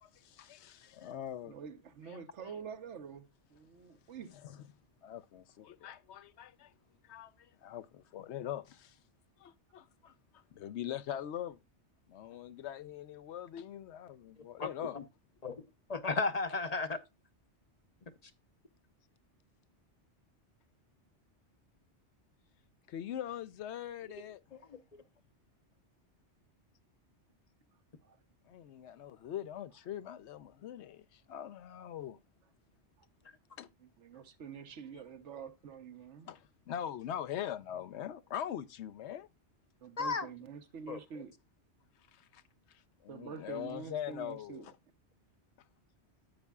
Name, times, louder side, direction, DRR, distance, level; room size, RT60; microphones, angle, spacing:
voice 1, 0.2-1.6 4.4-4.6 5.0-6.7 7.1-7.3 7.6-8.9 9.4-11.5 12.1-15.0 22.9-24.4 28.5-32.2 33.6-33.7 36.2-36.4 36.7-39.3 42.3-42.4 43.0-44.6, left 10 dB, 75° left, 0.9 m, -42 dB
voice 2, 1.4-4.3 28.0-28.2 33.8-36.3 39.8-41.3 43.1-44.7, right 6 dB, 85° right, 1.3 m, -47 dB
voice 3, 14.6-15.0 15.4-15.6 15.9-17.0 18.0-18.3 24.5-25.0 40.0-40.3 40.9-41.0, left 3 dB, 40° left, 0.7 m, -35 dB
10.0 x 8.3 x 2.3 m
omnidirectional pair, 1.2 m